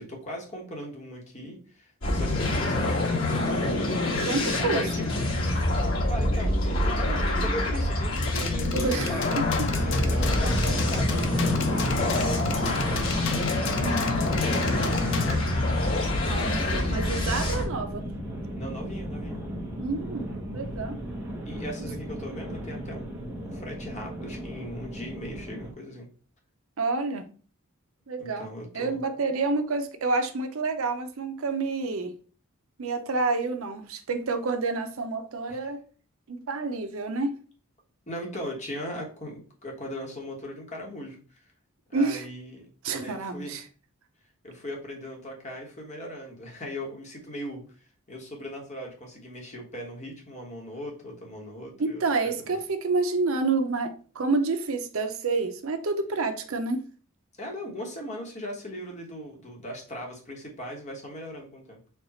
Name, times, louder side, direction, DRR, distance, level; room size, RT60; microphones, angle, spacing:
voice 1, 0.0-3.7 4.0-5.1 5.7-9.5 9.8-13.2 13.6-15.9 18.5-19.4 21.4-26.1 28.2-29.0 35.5-35.7 38.1-41.5 41.9-42.6 43.0-43.6 44.4-47.6 48.1-52.6 57.4-61.8, equal, 35° left, 1.2 m, -39 dB
sound 1, 2.0-17.6, left 2 dB, 85° left, 2.0 m, -26 dB
voice 2, 4.3-4.8 8.7-9.7 10.0-10.1 13.8-14.0 16.3-18.1 19.8-21.0 26.8-27.3 28.1-28.5 28.7-32.1 32.8-35.8 36.3-37.3 41.9-42.2 42.8-43.6 51.8-56.8, right 3 dB, 75° right, 0.6 m, -28 dB
sound 2, 8.2-15.3, left 6 dB, 55° left, 0.5 m, -35 dB
sound 3, 9.7-25.7, right 1 dB, 10° right, 0.8 m, -34 dB
4.6 x 2.4 x 4.1 m
head